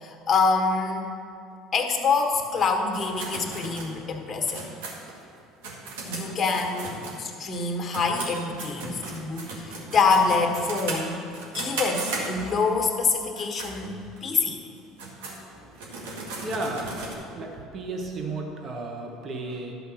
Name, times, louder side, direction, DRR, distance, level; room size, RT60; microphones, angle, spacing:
voice 1, 0.0-1.1 1.7-4.6 6.1-11.2 11.5-14.6, left 4 dB, 30° left, 3 dB, 1.4 m, -26 dB
sound 1, 2.9-7.6 7.9-12.7 13.2-13.7 14.2-14.3 14.8-17.1, right 2 dB, 80° right, 1.7 m, -36 dB
voice 2, 16.4-17.1 17.3-19.7, right 2 dB, 40° right, 1 dB, 1.3 m, -33 dB
11.5 x 5.0 x 6.3 m, 2.5 s
hypercardioid pair, 80°, 0 cm